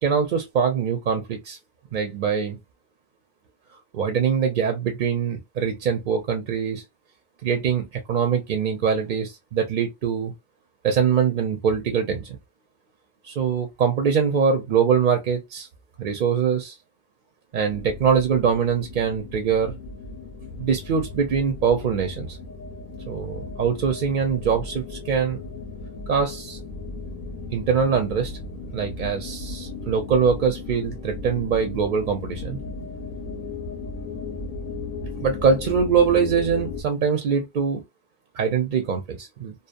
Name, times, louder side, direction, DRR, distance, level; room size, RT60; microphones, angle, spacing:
voice 1, 0.0-1.6 1.9-2.6 3.9-6.8 7.4-10.3 10.8-12.4 13.2-15.7 16.0-16.7 17.5-19.7 20.6-22.4 23.1-25.4 26.1-26.6 27.5-28.4 28.7-32.6 35.2-37.8 38.3-39.5, right 6 dB, 55° right, 0.6 m, -23 dB
sound 1, 17.7-36.8, left 3 dB, 50° left, 0.8 m, -36 dB
2.7 x 2.0 x 2.4 m
omnidirectional pair, 1.1 m